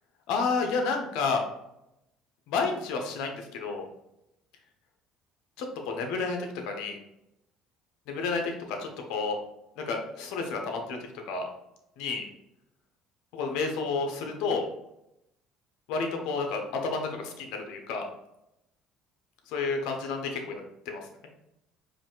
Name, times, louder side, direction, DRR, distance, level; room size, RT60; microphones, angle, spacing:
voice 1, 0.3-1.4 2.5-3.9 5.6-6.4 6.7-7.0 8.1-9.4 9.9-11.0 11.3-11.4 12.0-12.2 13.3-14.6 15.9-18.0 19.5-20.6 20.9-21.0, left 4 dB, 75° left, 3 dB, 0.9 m, -30 dB
5.0 x 2.7 x 3.8 m, 0.85 s
supercardioid pair, 90°, 0 cm